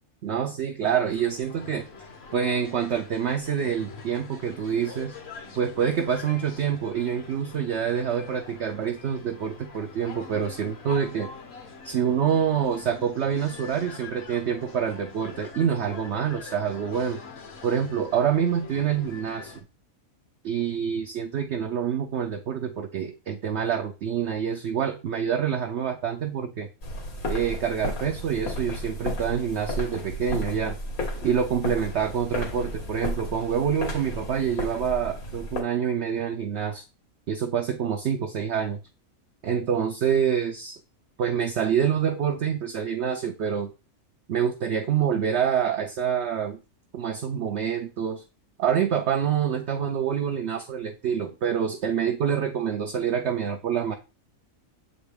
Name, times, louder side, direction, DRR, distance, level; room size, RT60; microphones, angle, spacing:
voice 1, 0.2-1.9 2.3-5.2 5.5-11.3 11.8-17.2 17.6-19.5 20.4-26.7 27.3-30.8 31.2-36.8 37.3-38.8 39.4-40.8 41.2-43.7 44.3-46.6 46.9-48.2 48.6-53.9, right 8 dB, 60° right, 4 dB, 0.8 m, -26 dB
sound 1, 0.9-19.6, left 4 dB, 50° left, 1.2 m, -44 dB
sound 2, 26.8-35.6, left 1 dB, 75° left, 2.1 m, -33 dB
7.5 x 4.0 x 3.4 m, 0.30 s
omnidirectional pair, 1.5 m